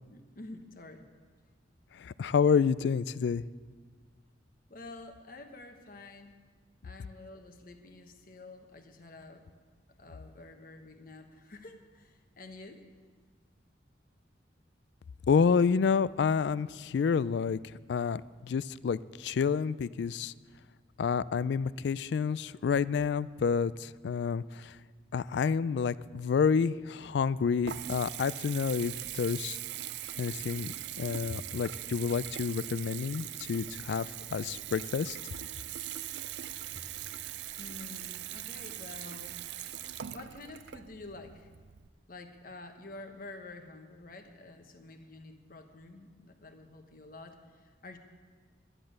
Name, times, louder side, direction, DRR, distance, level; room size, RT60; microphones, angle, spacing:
voice 1, 0.1-1.1 4.7-6.4 6.8-9.5 10.0-12.9 31.3-31.4 37.3-39.4 40.1-41.5 42.1-48.0, left 2 dB, 50° left, 5 dB, 1.2 m, -49 dB
voice 2, 2.0-3.4 15.3-17.6 17.9-20.3 21.0-24.8 25.1-29.6 30.2-35.2, left 6 dB, 70° left, 18 dB, 0.3 m, -29 dB
Water tap faucet / Bathtub (filling or washing) / Trickle dribble, 27.0-41.9, right 12 dB, 65° right, 0.4 m, -41 dB
12.5 x 11.0 x 6.4 m, 1.5 s
head